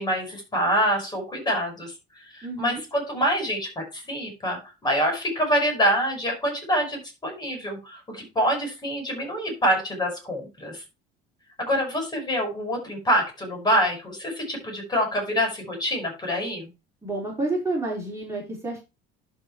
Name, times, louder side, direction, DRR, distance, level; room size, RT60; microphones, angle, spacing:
voice 1, 0.0-10.8 11.6-16.7, equal, 20° left, 3 dB, 5.5 m, -26 dB
voice 2, 2.4-2.8 17.0-18.8, right 2 dB, 15° right, -3 dB, 3.9 m, -29 dB
11.5 x 4.7 x 4.5 m, 0.27 s
cardioid pair, 135°, 21 cm